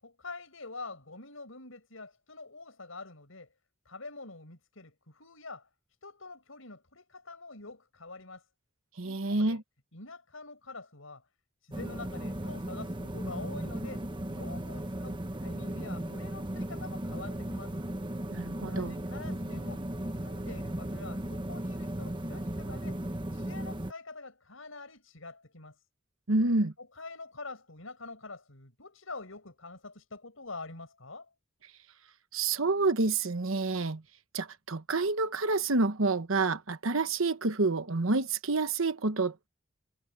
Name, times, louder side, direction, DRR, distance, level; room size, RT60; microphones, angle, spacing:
voice 1, 0.0-3.5 3.9-5.7 6.0-8.4 9.0-9.6 9.9-11.2 11.6-17.8 18.6-19.8 20.1-23.0 23.3-25.8 26.8-31.3, left 3 dB, 80° left, 5.8 m, -46 dB
voice 2, 9.0-9.6 18.3-19.0 26.3-26.7 32.3-34.0 34.3-39.5, right 3 dB, 85° right, 1.2 m, -28 dB
sound 1, 11.7-23.9, right 1 dB, 25° right, 1.2 m, -36 dB
head